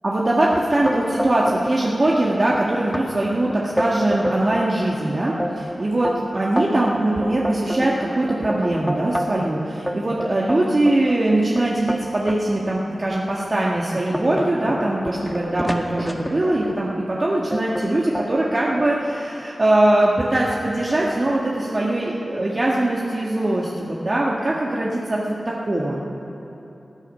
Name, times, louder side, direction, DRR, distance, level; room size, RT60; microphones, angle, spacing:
voice 1, 0.0-26.0, right 1 dB, 45° right, -4 dB, 1.8 m, -21 dB
sound 1, 0.8-1.8 2.0-2.6 2.9-3.1 3.5-4.7 5.1-9.5 9.9-12.4 13.0-13.2 13.6-16.7 17.5-17.9 18.1-18.9, equal, ahead, 1.6 m, -28 dB
19.0 x 11.0 x 5.7 m, 3.0 s
cardioid pair, 45°, 0 cm